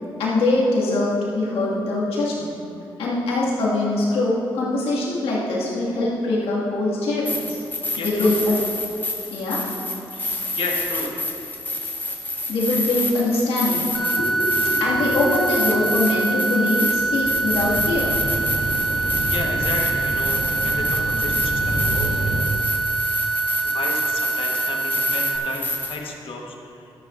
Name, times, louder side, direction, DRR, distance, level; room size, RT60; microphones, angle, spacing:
voice 1, 0.2-1.1 1.4-2.6 3.0-7.6 8.0-8.6 9.3-9.6 12.5-18.1, left 2 dB, 85° left, -6 dB, 2.2 m, -23 dB
sound 1, 7.3-26.0, left 2 dB, 20° left, 1.7 m, -28 dB
voice 2, 7.9-8.4 10.1-11.2 19.3-22.5 23.6-26.9, left 3 dB, 70° left, 0 dB, 1.4 m, -32 dB
sound 2, 13.9-25.4, right 3 dB, 5° left, 1.1 m, -25 dB
sound 3, 16.9-22.4, right 1 dB, 75° right, 2.4 m, -29 dB
12.5 x 10.5 x 2.6 m, 2.8 s
supercardioid pair, 55°, 10 cm